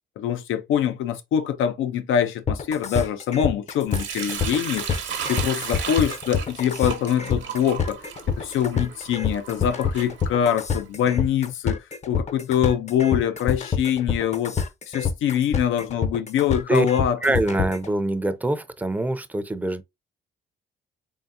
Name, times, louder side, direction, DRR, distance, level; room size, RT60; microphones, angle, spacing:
voice 1, 0.2-4.9 5.3-17.4, left 9 dB, 85° left, 0.6 m, -24 dB
sound 1, 2.5-17.9, left 6 dB, 35° left, 0.6 m, -26 dB
Sink (filling or washing) / Liquid, 3.9-10.8, right 7 dB, 70° right, 1.0 m, -35 dB
voice 2, 17.2-19.8, right 1 dB, 10° right, 0.5 m, -24 dB
3.7 x 3.5 x 2.6 m
cardioid pair, 90°, 20 cm